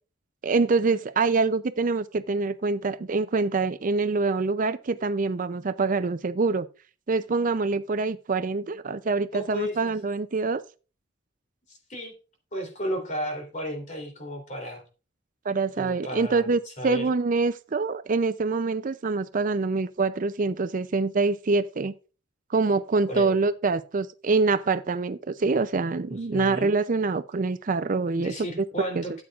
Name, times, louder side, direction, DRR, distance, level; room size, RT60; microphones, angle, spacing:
voice 1, 0.4-6.7 7.1-10.6 15.5-21.9 22.5-28.3 28.9-29.0, right 4 dB, 45° right, 0.5 m, -25 dB
voice 2, 9.3-9.9 11.7-12.1 12.5-14.8 15.8-17.1 23.1-23.4 26.1-26.7 28.1-29.2, equal, 40° left, 3.2 m, -34 dB
13.0 x 8.6 x 2.4 m
head